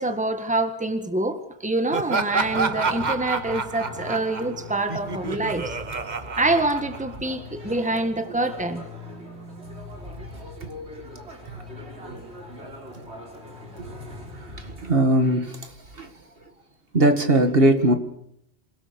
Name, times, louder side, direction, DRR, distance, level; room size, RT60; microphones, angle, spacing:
voice 1, 0.0-5.8 6.4-8.8, right 2 dB, 5° right, 7 dB, 1.7 m, -26 dB
Laughter, 1.9-7.4, right 4 dB, 45° right, 1.3 m, -29 dB
sound 1, 2.3-15.0, left 1 dB, 85° right, 4.4 m, -41 dB
voice 2, 14.8-15.6 16.0-16.1 16.9-17.9, right 1 dB, 60° right, 6 dB, 2.2 m, -19 dB
27.0 x 18.0 x 7.0 m, 0.76 s
omnidirectional pair, 1.1 m